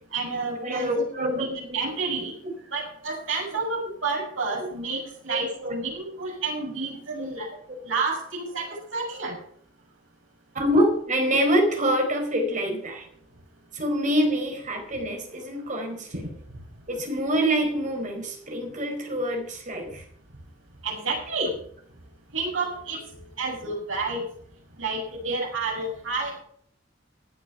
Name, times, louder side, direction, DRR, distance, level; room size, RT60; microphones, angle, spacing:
voice 1, 0.1-2.3 2.7-7.5 7.8-9.4 20.8-21.5 22.3-23.0 23.4-24.2 24.8-26.4, right 3 dB, 85° right, 0 dB, 6.6 m, -30 dB
voice 2, 0.6-1.5 5.3-5.4 7.2-7.3 10.5-13.1 13.7-16.1 16.9-20.0, equal, 40° right, 4 dB, 4.5 m, -25 dB
16.0 x 9.4 x 5.8 m, 0.63 s
head